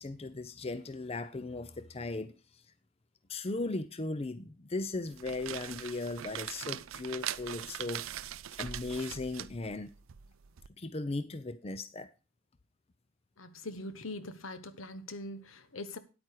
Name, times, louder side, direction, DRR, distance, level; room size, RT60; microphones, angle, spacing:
voice 1, 0.0-2.3 3.3-8.1 8.6-9.9 10.8-12.1, left 2 dB, 30° left, 0.6 m, -37 dB
sound 1, 5.0-10.7, right 11 dB, 80° right, 0.5 m, -42 dB
voice 2, 13.4-16.0, left 2 dB, 80° left, 1.2 m, -42 dB
9.8 x 8.7 x 4.6 m
head